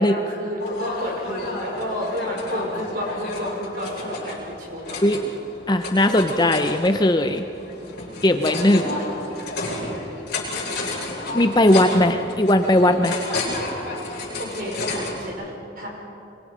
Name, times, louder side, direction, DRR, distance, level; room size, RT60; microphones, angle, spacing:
voice 1, 0.0-5.3 7.8-8.5 8.8-9.9 14.4-15.9, equal, 45° right, -1 dB, 5.1 m, -32 dB
sound 1, 0.6-15.3, left 2 dB, 55° left, 7.4 m, -31 dB
voice 2, 5.7-7.4 8.2-8.9 10.8-10.9 11.3-13.2, left 1 dB, 20° left, 7 dB, 0.7 m, -18 dB
25.0 x 24.5 x 5.1 m, 2.8 s
head